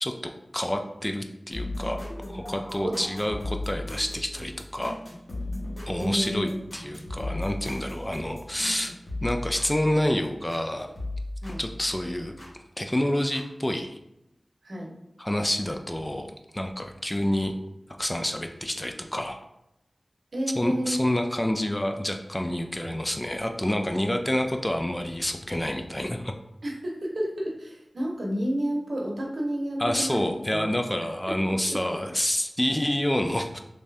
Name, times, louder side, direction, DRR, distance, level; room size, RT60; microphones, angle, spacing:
voice 1, 0.0-2.0 2.3-5.0 5.9-8.9 9.2-10.9 11.6-12.3 12.8-14.0 15.2-17.5 18.0-19.4 20.6-26.3 29.8-33.6, left 1 dB, 20° left, 5 dB, 0.3 m, -28 dB
sound 1, 1.5-10.7 11.0-12.5 13.3-13.4, left 1 dB, 80° left, 1.1 m, -37 dB
sound 2, 1.9-3.8, equal, 10° right, 0.8 m, -45 dB
voice 2, 6.0-6.7 11.4-11.6 14.6-14.9 20.3-21.1 26.6-30.7 31.3-31.8, equal, 70° right, -1 dB, 0.8 m, -30 dB
3.3 x 2.7 x 3.3 m, 0.86 s
wide cardioid pair, 65°, 0 cm